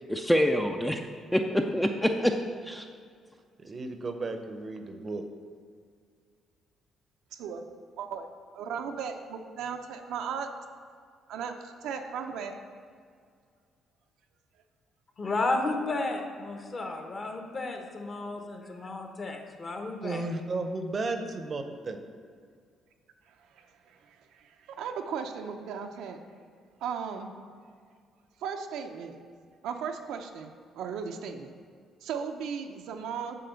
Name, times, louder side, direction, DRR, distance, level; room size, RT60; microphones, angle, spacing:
voice 1, 0.1-1.0 1.3-2.9, equal, 5° left, 3 dB, 0.4 m, -26 dB
voice 2, 3.6-5.2 20.0-22.0, right 3 dB, 35° right, 7 dB, 0.7 m, -34 dB
voice 3, 7.3-7.6 8.0-8.3 8.5-10.5 11.3-12.5 23.5-26.2 26.8-27.3 28.4-29.2 29.6-30.5 30.8-31.5 32.0-33.4, right 6 dB, 85° right, 5 dB, 0.6 m, -36 dB
voice 4, 15.2-20.2, left 2 dB, 35° left, 3 dB, 1.0 m, -33 dB
7.6 x 4.2 x 6.9 m, 2.1 s
cardioid pair, 110°, 0 cm